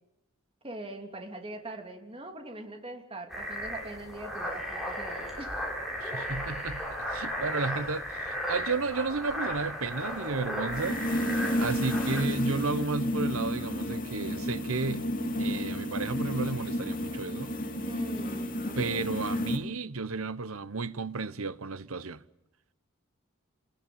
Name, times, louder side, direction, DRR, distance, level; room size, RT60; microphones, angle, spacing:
voice 1, 0.6-5.6 7.5-7.7 17.9-19.1, right 1 dB, 25° right, 3.1 m, -42 dB
sound 1, 3.3-12.2, equal, ahead, 6.5 m, -35 dB
voice 2, 6.0-11.2 11.6-15.1 15.4-17.5 18.8-22.2, right 4 dB, 75° right, 1.0 m, -33 dB
sound 2, 9.9-19.6, left 1 dB, 40° left, 2.9 m, -31 dB
26.0 x 21.0 x 8.7 m
head